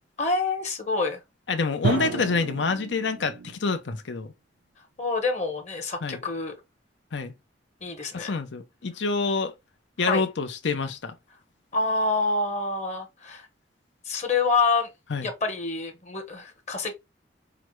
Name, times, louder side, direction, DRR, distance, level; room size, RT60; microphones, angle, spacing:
voice 1, 0.2-1.2 1.7-2.3 5.0-6.5 7.8-8.3 10.0-10.2 11.7-13.5 14.1-14.9 15.2-16.9, left 3 dB, 40° left, 1.1 m, -27 dB
voice 2, 1.5-4.3 6.0-6.2 7.1-7.3 8.1-9.5 10.0-11.1 15.1-15.3, left 4 dB, 75° left, 0.6 m, -27 dB
Drum, 1.8-3.8, right 4 dB, 80° right, 0.5 m, -31 dB
4.8 x 2.1 x 3.0 m
head